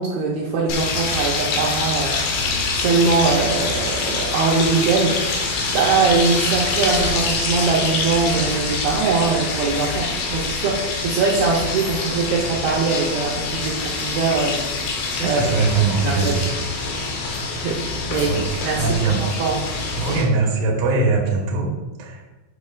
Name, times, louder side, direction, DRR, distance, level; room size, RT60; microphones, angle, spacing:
voice 1, 0.0-14.6 14.9-15.5 16.0-16.5 17.5-17.8 18.1-18.3 18.6-19.6, right 4 dB, 75° right, -3 dB, 2.5 m, -22 dB
sound 1, 0.7-20.2, left 3 dB, 70° left, 2.4 m, -25 dB
voice 2, 15.2-16.6 18.3-18.4 18.8-19.2 19.9-22.2, right 4 dB, 60° right, -2 dB, 1.9 m, -21 dB
9.4 x 6.1 x 2.4 m, 1.1 s
omnidirectional pair, 5.1 m